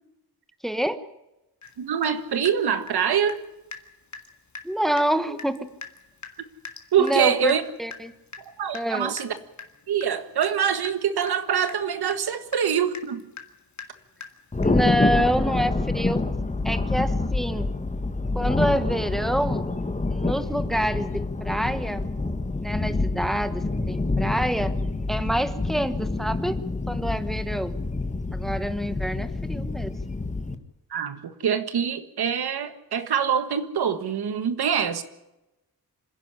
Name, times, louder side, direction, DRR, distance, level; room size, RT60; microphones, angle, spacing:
voice 1, 0.6-1.0 4.6-5.7 7.0-8.1 8.7-9.2 14.6-16.2 16.6-17.7 18.3-19.6 20.1-22.1 22.6-24.7 25.1-26.6 26.9-27.8 28.3-29.9, equal, ahead, 1.1 m, -27 dB
Water tap faucet / Drip, 1.6-1.7 2.0-3.4 3.7-3.9 4.1-4.3 4.5-4.7 5.0-5.1 5.4-14.9, left 4 dB, 50° left, 2.2 m, -42 dB
voice 2, 1.8-3.4 6.9-7.6 8.5-9.3 9.9-13.2 30.9-35.0, right 8 dB, 90° right, 1.7 m, -24 dB
Thunder, 14.5-30.5, left 3 dB, 20° left, 1.5 m, -27 dB
26.0 x 11.0 x 9.9 m
wide cardioid pair, 125°, 37 cm